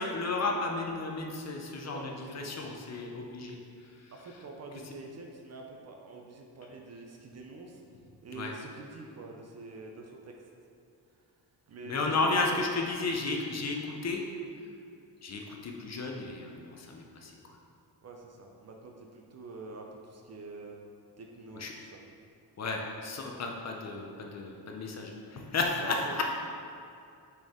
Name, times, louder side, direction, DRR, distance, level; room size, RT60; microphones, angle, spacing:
voice 1, 0.0-3.6 3.8-4.1 4.8-4.9 8.3-8.5 11.9-14.2 15.2-17.3 21.5-21.7 22.6-26.2, left 3 dB, 40° left, 1 dB, 0.6 m, -33 dB
voice 2, 1.8-2.7 4.1-7.8 8.2-10.4 11.7-12.6 18.0-20.8 21.2-22.0 25.8-26.2, right 3 dB, 40° right, 1 dB, 0.5 m, -45 dB
6.1 x 4.4 x 3.6 m, 2.5 s
wide cardioid pair, 165°, 42 cm